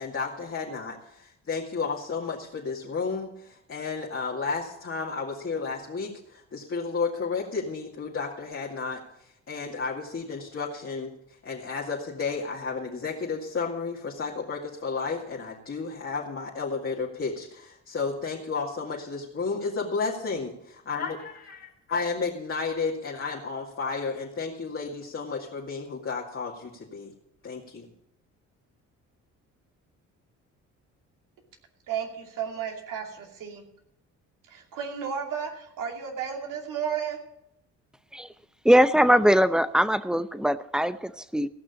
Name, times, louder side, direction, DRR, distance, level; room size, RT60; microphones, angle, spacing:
voice 1, 0.0-9.0 9.5-11.1 11.4-21.6 21.9-27.1 27.4-27.9, left 4 dB, 40° left, -3 dB, 2.4 m, -32 dB
voice 2, 31.9-33.6 34.5-37.2, right 7 dB, 70° right, 2 dB, 2.7 m, -33 dB
voice 3, 38.6-41.5, equal, ahead, 14 dB, 0.7 m, -21 dB
16.5 x 6.1 x 8.3 m, 0.79 s
supercardioid pair, 70°, 33 cm